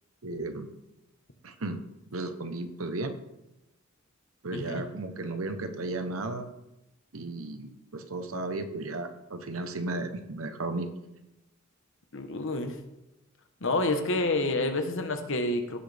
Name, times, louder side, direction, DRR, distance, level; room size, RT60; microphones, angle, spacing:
voice 1, 0.2-0.7 1.4-1.8 2.1-3.2 4.4-6.5 7.1-10.9, right 2 dB, 75° right, 8 dB, 1.0 m, -34 dB
voice 2, 4.5-4.8 12.1-12.8 13.6-15.8, left 2 dB, 65° left, 6 dB, 1.2 m, -28 dB
16.5 x 6.2 x 3.5 m, 0.93 s
head